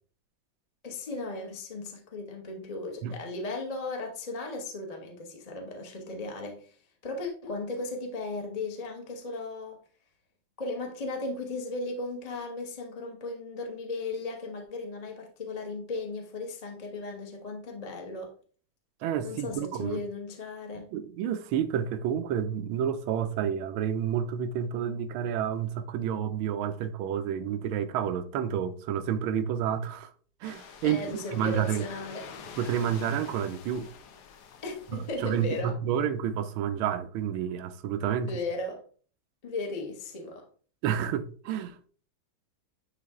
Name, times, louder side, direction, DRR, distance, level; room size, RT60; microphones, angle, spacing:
voice 1, 0.8-6.8 7.0-9.8 10.6-18.3 19.2-20.9 30.8-32.3 34.6-35.8 38.3-38.8 39.4-40.5, left 2 dB, 25° left, 0.9 m, -36 dB
voice 2, 19.0-20.0 20.9-30.1 30.4-31.9 32.6-33.9 34.9-38.4 40.8-41.9, right 9 dB, 80° right, 1.5 m, -30 dB
sound 1, 30.4-35.6, left 6 dB, 60° left, 1.2 m, -46 dB
9.7 x 3.4 x 3.6 m
omnidirectional pair, 2.3 m